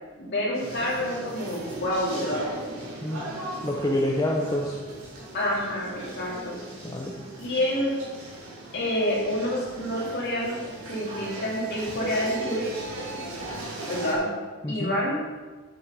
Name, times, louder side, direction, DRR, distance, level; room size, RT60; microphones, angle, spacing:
voice 1, 0.2-2.4 5.3-6.6 7.4-7.9 8.7-10.6 10.9-12.6 13.9-14.3 14.7-15.2, left 1 dB, 55° left, -5 dB, 2.8 m, -28 dB
sound 1, 0.5-14.1, right 1 dB, 80° right, 2.9 m, -38 dB
voice 2, 3.0-3.3 3.6-4.8 6.8-7.1 14.6-14.9, left 1 dB, 15° left, -1 dB, 0.7 m, -27 dB
7.9 x 7.3 x 5.1 m, 1.4 s
head